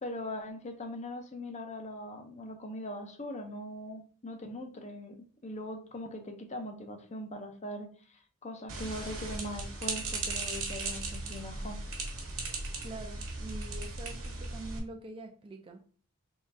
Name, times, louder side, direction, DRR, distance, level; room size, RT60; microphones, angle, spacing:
voice 1, 0.0-5.2 5.4-11.8, left 1 dB, 30° left, 0.7 m, -41 dB
sound 1, 8.7-14.8, right 3 dB, 65° right, 1.2 m, -37 dB
voice 2, 12.8-15.8, right 2 dB, 25° right, 0.4 m, -45 dB
3.7 x 3.1 x 2.6 m
head